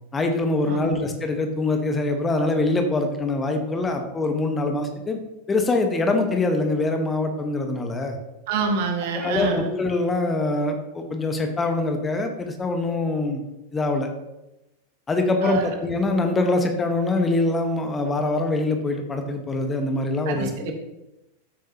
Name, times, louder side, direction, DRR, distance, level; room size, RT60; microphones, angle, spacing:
voice 1, 0.1-5.2 5.5-8.2 9.2-13.4 13.7-14.1 15.1-20.7, left 2 dB, 15° left, 5 dB, 1.3 m, -24 dB
voice 2, 0.7-1.0 8.5-9.7 15.4-15.7 20.3-20.7, right 4 dB, 50° right, 3 dB, 1.8 m, -27 dB
13.5 x 8.8 x 3.0 m, 0.96 s
figure-of-eight pair, 90°, 0 cm